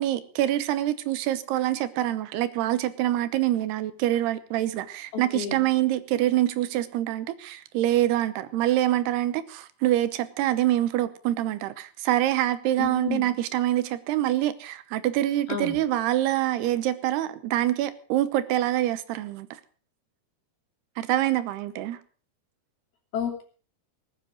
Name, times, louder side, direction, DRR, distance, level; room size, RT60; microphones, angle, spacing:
voice 1, 0.0-19.6 21.0-22.0, right 13 dB, 85° right, 13 dB, 3.1 m, -25 dB
voice 2, 5.1-5.7 12.8-13.3 15.5-15.8 23.1-23.4, left 7 dB, 70° left, 2 dB, 5.0 m, -31 dB
19.5 x 9.7 x 6.2 m, 0.41 s
omnidirectional pair, 4.6 m